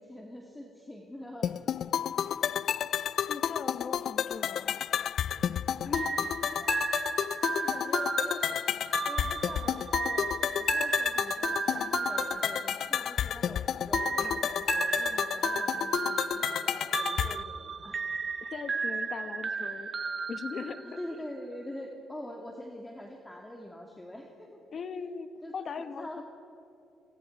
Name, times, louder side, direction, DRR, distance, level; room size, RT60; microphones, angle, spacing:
voice 1, 0.0-1.5 6.2-6.8 7.3-8.6 9.0-18.0 20.8-24.6 25.4-26.2, left 1 dB, 10° left, 1 dB, 2.5 m, -44 dB
sound 1, 1.4-17.4, left 9 dB, 65° left, 0.4 m, -31 dB
voice 2, 3.3-4.8 5.8-6.1 14.2-14.5 18.4-19.9 20.3-20.9 24.7-26.2, left 5 dB, 50° left, 11 dB, 1.3 m, -39 dB
sound 2, 5.9-13.4 13.9-21.2, right 5 dB, 40° right, 1.5 m, -34 dB
28.0 x 24.0 x 4.8 m, 2.9 s
cardioid pair, 90°, 0 cm